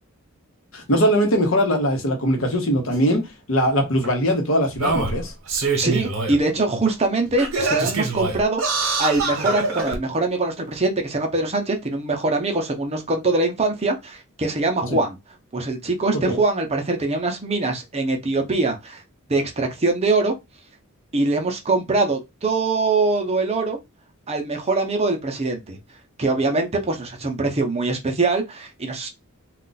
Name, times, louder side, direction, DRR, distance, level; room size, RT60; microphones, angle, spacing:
voice 1, 0.7-5.3 14.9-15.0 16.1-16.4, equal, 65° left, 0.9 m, -21 dB
Singing, 2.9-3.0 4.0-4.1 4.7-6.4 6.9-7.0 7.4-10.0 10.7-10.8, right 3 dB, 70° right, 0.9 m, -24 dB
voice 2, 5.7-15.2 15.5-19.0 19.3-20.3 21.1-23.8 24.3-25.8 26.2-29.1, right 3 dB, 30° right, 0.6 m, -23 dB
2.4 x 2.3 x 3.9 m
head